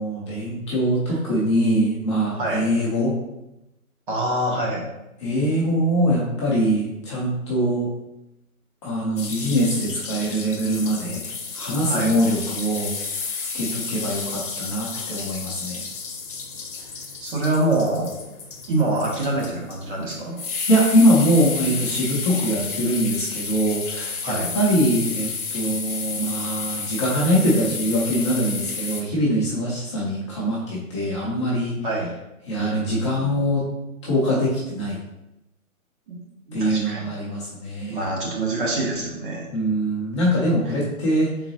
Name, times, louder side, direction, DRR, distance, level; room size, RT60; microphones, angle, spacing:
voice 1, 0.0-3.1 5.2-7.9 8.8-11.2 11.5-12.9 13.5-15.8 20.7-31.7 32.5-33.6 34.0-35.0 36.5-38.1 39.5-41.3, equal, 20° left, -7 dB, 0.7 m, -23 dB
voice 2, 4.1-4.9 11.9-12.1 17.2-18.1 18.7-20.4 24.2-24.6 31.8-32.1 32.6-33.6 36.1-36.2 36.5-37.0 37.9-39.5, right 1 dB, 35° right, -3 dB, 1.1 m, -25 dB
sound 1, 9.2-29.0, left 5 dB, 55° left, 1.0 m, -31 dB
4.4 x 3.9 x 2.8 m, 0.91 s
figure-of-eight pair, 140°, 44 cm